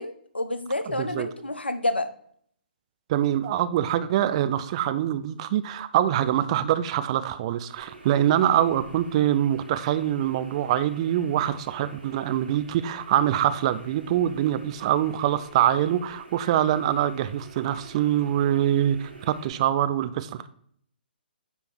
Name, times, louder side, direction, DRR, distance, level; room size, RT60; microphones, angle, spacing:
voice 1, 0.0-2.1, left 2 dB, 85° left, 10 dB, 0.9 m, -29 dB
voice 2, 1.0-1.3 3.1-20.5, right 11 dB, 35° right, 12 dB, 0.5 m, -24 dB
sound 1, 7.8-19.5, right 3 dB, 75° right, 2.4 m, -47 dB
9.7 x 3.6 x 4.5 m, 0.62 s
figure-of-eight pair, 130°, 6 cm